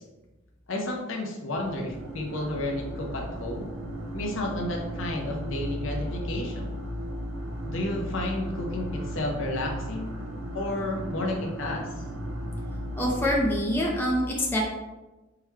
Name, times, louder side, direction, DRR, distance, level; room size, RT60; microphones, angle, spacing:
voice 1, 0.7-3.7 4.1-6.6 7.6-10.1 10.5-11.9, left 1 dB, 65° left, 0 dB, 0.7 m, -31 dB
sound 1, 1.5-13.4, equal, 80° right, 0.6 m, -35 dB
voice 2, 13.0-14.6, equal, 10° left, -2 dB, 0.4 m, -25 dB
4.7 x 2.3 x 3.1 m, 1.1 s
head